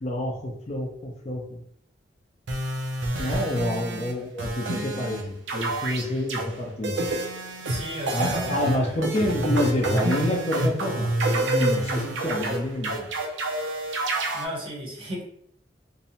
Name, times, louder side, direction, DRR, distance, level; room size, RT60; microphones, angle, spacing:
voice 1, 0.0-1.6 3.2-7.1 8.1-13.2, left 1 dB, 35° left, 0 dB, 0.5 m, -28 dB
sound 1, 2.5-4.1 4.4-5.2 5.5-6.4 6.8-14.5, right 2 dB, 75° right, 0.5 m, -28 dB
voice 2, 7.6-9.1 14.3-15.2, equal, 30° right, -3 dB, 0.7 m, -35 dB
2.6 x 2.1 x 2.8 m, 0.69 s
head